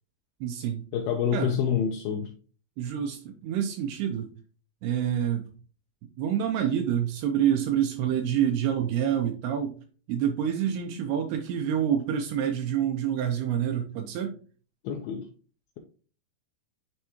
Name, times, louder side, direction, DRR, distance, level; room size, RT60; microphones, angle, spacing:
voice 1, 0.4-0.8 1.3-1.6 2.8-4.3 4.8-5.5 6.2-9.8 10.1-14.3, right 9 dB, 85° right, 5 dB, 2.5 m, -27 dB
voice 2, 0.9-2.3 14.8-15.3, left 8 dB, 80° left, 1 dB, 2.2 m, -27 dB
9.9 x 3.4 x 3.0 m, 0.38 s
omnidirectional pair, 5.1 m